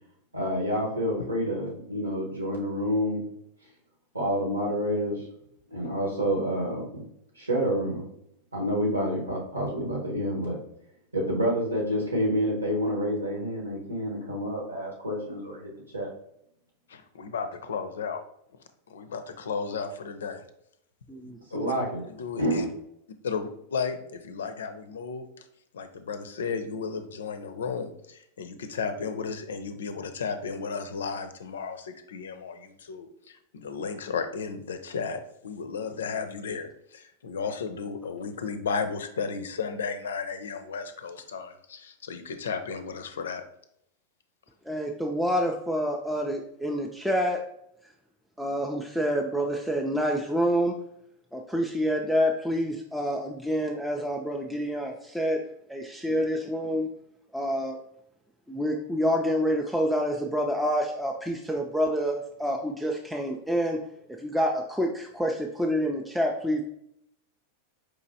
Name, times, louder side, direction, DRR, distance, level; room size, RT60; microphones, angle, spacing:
voice 1, 0.3-3.2 4.1-5.3 5.7-7.0 7.3-8.0 8.5-10.6 11.1-16.1 21.5-22.0 22.4-22.7, equal, 80° right, -1 dB, 1.2 m, -28 dB
voice 2, 16.9-18.2 18.9-20.4 21.6-21.8 22.1-22.7 23.2-25.4 25.7-43.4, left 5 dB, 65° left, 8 dB, 0.4 m, -34 dB
voice 3, 21.1-21.7 44.7-47.4 48.4-50.8 51.3-55.4 55.7-56.9 57.3-57.8 58.5-63.8 64.2-66.6, equal, ahead, 0 dB, 0.3 m, -27 dB
4.7 x 3.0 x 2.7 m, 0.74 s
figure-of-eight pair, 90°, 0 cm